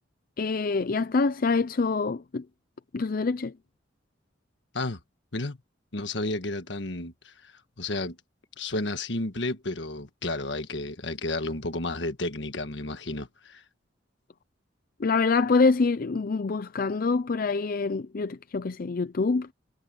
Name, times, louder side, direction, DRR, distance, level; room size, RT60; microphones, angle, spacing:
voice 1, 0.4-2.4 2.9-3.5 15.0-19.5, left 4 dB, 50° left, 0.5 m, -25 dB
voice 2, 5.9-8.2 8.6-13.6, left 2 dB, 70° left, 1.5 m, -32 dB
head